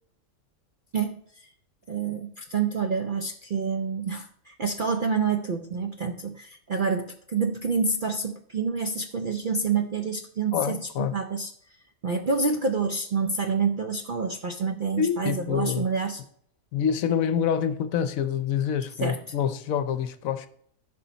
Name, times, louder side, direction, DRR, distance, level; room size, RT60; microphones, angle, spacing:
voice 1, 0.9-1.5 1.9-11.7 12.0-16.2 19.0-19.2, right 5 dB, 55° right, 0.5 m, -28 dB
voice 2, 10.5-11.1 15.0-15.9 16.7-20.5, left 8 dB, 70° left, 1.1 m, -26 dB
14.0 x 5.6 x 4.0 m
omnidirectional pair, 1.5 m